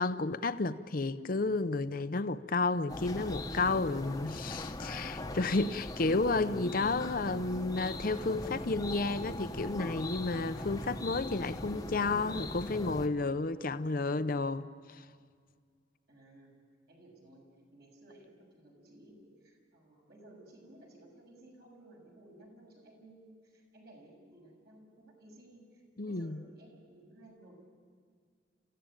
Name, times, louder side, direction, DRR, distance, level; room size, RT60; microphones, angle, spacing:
voice 1, 0.0-15.0 26.0-26.4, left 3 dB, 50° left, 0.7 m, -32 dB
sound 1, 2.9-13.1, left 1 dB, 20° left, 1.1 m, -40 dB
voice 2, 16.1-16.5 16.9-27.5, right 1 dB, 60° right, 6.9 m, -57 dB
28.0 x 15.5 x 9.0 m
head